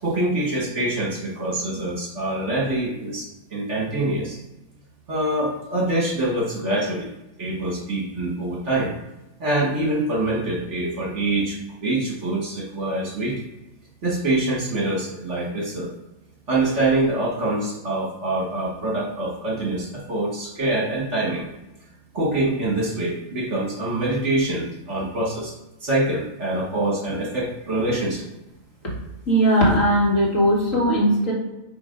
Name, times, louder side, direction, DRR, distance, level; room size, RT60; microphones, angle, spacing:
voice 1, 0.0-4.4 5.1-7.1 7.4-8.9 9.4-13.3 14.0-15.9 16.5-21.4 22.1-25.5 25.8-28.2, right 2 dB, 45° right, -3 dB, 1.8 m, -25 dB
voice 2, 29.3-31.3, equal, 50° left, -3 dB, 2.2 m, -18 dB
8.3 x 3.9 x 5.2 m, 0.96 s
omnidirectional pair, 1.7 m